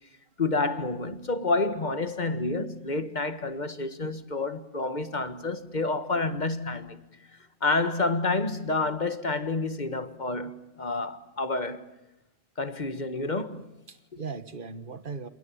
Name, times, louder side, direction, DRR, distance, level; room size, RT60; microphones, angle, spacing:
voice 1, 0.4-7.0 7.6-11.9 12.6-13.6, left 3 dB, 45° left, 1.7 m, -29 dB
voice 2, 12.8-13.3 13.9-15.3, right 5 dB, 50° right, 1.6 m, -39 dB
28.5 x 27.5 x 7.2 m
omnidirectional pair, 1.1 m